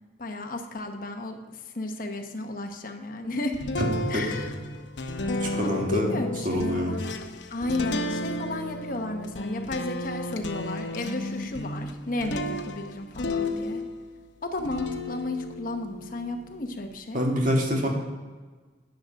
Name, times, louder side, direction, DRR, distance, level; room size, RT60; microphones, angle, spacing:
voice 1, 0.2-3.5 4.1-4.5 5.6-7.1 7.5-13.8 14.4-17.2, left 2 dB, 50° left, 5 dB, 0.9 m, -33 dB
sound 1, 3.5-14.1 14.6-16.9, left 1 dB, 80° left, 0.8 m, -33 dB
voice 2, 5.4-6.1 6.5-6.9 17.1-17.9, equal, 45° right, 0 dB, 1.8 m, -26 dB
9.4 x 6.5 x 6.4 m, 1.4 s
head